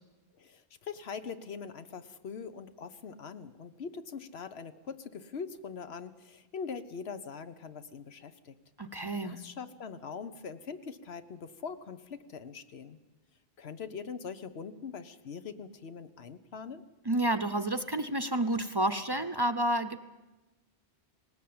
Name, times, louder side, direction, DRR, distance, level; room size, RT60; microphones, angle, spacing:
voice 1, 0.4-8.6 9.2-13.0 13.6-16.8, left 5 dB, 85° left, 10 dB, 1.2 m, -42 dB
voice 2, 8.8-9.4 17.1-20.0, right 1 dB, 30° right, 10 dB, 0.6 m, -30 dB
19.5 x 18.0 x 8.6 m, 1.1 s
omnidirectional pair, 1.0 m